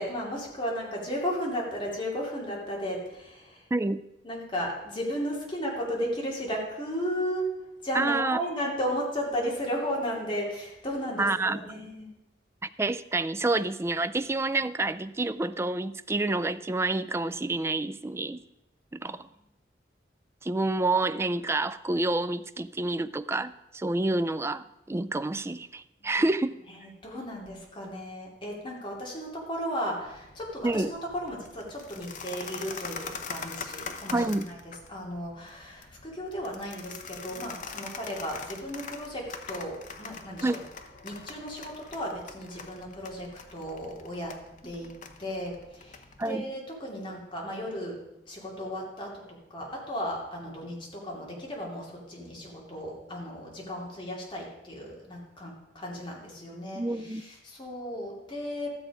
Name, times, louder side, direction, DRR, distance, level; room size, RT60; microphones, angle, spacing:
voice 1, 0.0-3.6 4.2-7.5 7.8-12.1 19.0-19.2 26.0-26.1 26.7-34.6 34.9-40.6 41.0-44.3 44.6-44.9 45.2-48.0 48.3-58.7, equal, 30° left, -3 dB, 2.7 m, -35 dB
voice 2, 3.7-4.0 7.9-8.4 11.2-11.6 12.6-18.4 18.9-19.3 20.4-26.6 30.6-30.9 34.1-34.5 40.4-40.6 46.2-46.5 56.7-57.2, right 2 dB, 15° right, 13 dB, 0.3 m, -28 dB
sound 1, 30.0-46.3, left 5 dB, 45° left, 0.9 m, -43 dB
13.0 x 7.5 x 4.9 m, 0.93 s
head